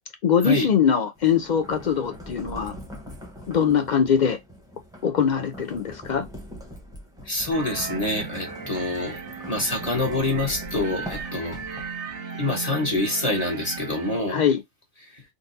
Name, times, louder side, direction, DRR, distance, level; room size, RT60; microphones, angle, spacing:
voice 1, 0.2-2.7 3.5-4.4 5.0-6.2 14.3-14.6, left 7 dB, 75° left, 0.4 m, -22 dB
sound 1, 1.2-12.1, equal, 5° right, 1.0 m, -42 dB
voice 2, 7.2-9.2 9.4-11.6 12.4-14.4 15.1-15.2, left 2 dB, 30° left, 1.3 m, -26 dB
sound 2, 7.5-14.2, right 4 dB, 65° right, 1.1 m, -36 dB
3.8 x 2.5 x 2.6 m
omnidirectional pair, 1.3 m